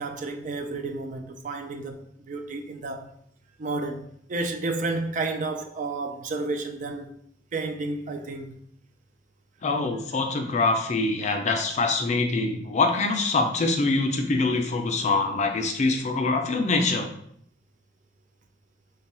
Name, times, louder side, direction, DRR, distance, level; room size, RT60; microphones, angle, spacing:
voice 1, 0.0-3.1 3.6-7.1 7.5-8.6, right 3 dB, 45° right, 0.4 m, -31 dB
voice 2, 9.6-17.1, left 3 dB, 40° left, 0.4 m, -24 dB
3.3 x 2.3 x 4.2 m
head